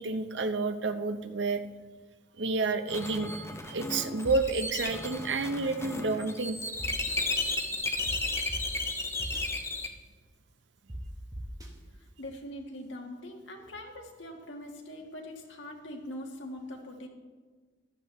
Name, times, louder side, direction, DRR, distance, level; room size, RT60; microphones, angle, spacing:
voice 1, 0.0-1.6 2.4-3.3 3.7-6.6, right 3 dB, 65° right, 9 dB, 0.7 m, -30 dB
sound 1, 2.9-9.9, left 2 dB, 15° left, 0.7 m, -34 dB
sound 2, 4.2-4.3 4.8-4.9 6.8-7.2 8.1-8.2 8.5-8.6 9.2-9.4 10.9-11.0 11.3-11.7, right 1 dB, 20° right, 1.2 m, -39 dB
voice 2, 11.9-17.1, left 1 dB, 70° left, 2 dB, 1.6 m, -42 dB
14.5 x 11.0 x 3.2 m, 1.4 s
head